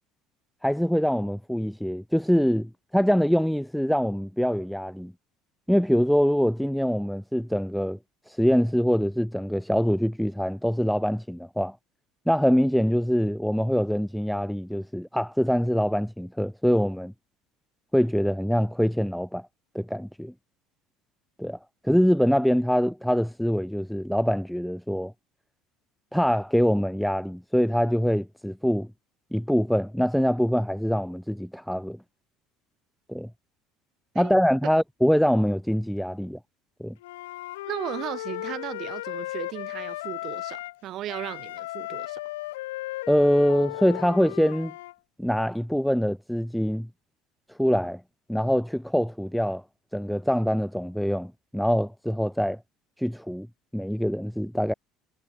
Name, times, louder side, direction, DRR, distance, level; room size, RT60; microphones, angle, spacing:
voice 1, 0.6-5.1 5.7-8.0 8.3-11.8 12.3-17.1 17.9-19.5 19.7-20.3 21.4-21.6 21.8-25.1 26.1-28.9 29.3-32.0 33.1-33.3 34.2-36.4 36.8-36.9 43.1-44.7 45.2-46.9 47.6-48.0 48.3-49.6 49.9-52.6 53.0-53.5 53.7-54.7, equal, ahead, 0.3 m, -24 dB
Wind instrument woodwind instrument, 37.0-40.8 41.1-44.9, left 17 dB, 90° left, 2.0 m, -36 dB
voice 2, 37.7-42.2, right 13 dB, 60° right, 4.5 m, -36 dB
supercardioid pair, 85°, 0 cm